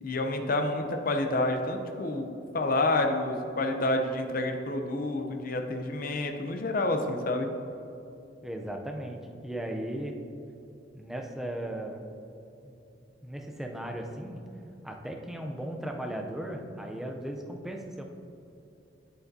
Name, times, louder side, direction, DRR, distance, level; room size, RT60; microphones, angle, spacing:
voice 1, 0.0-7.5, left 2 dB, 50° left, 4 dB, 0.7 m, -29 dB
voice 2, 8.4-10.1 10.9-12.1 12.6-12.8 13.2-14.4 14.8-18.0, right 1 dB, ahead, 2 dB, 0.5 m, -37 dB
8.4 x 7.8 x 2.7 m, 2.8 s
head